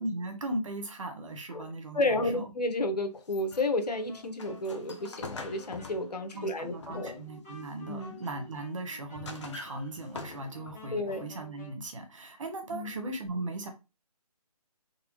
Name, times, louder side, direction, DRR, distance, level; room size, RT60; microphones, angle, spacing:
voice 1, 0.0-2.5 6.3-13.7, right 2 dB, 50° right, 5 dB, 1.1 m, -38 dB
voice 2, 1.9-7.2 7.9-8.2 10.9-11.3 12.7-13.0, left 2 dB, 85° left, 7 dB, 1.0 m, -31 dB
sound 1, 3.2-7.4 7.9-8.4 8.9-10.9, left 4 dB, 50° left, 0.7 m, -45 dB
Wind instrument woodwind instrument, 3.5-11.8, left 3 dB, 5° left, 0.5 m, -52 dB
4.0 x 2.7 x 3.1 m, 0.28 s
hypercardioid pair, 165°, 20 cm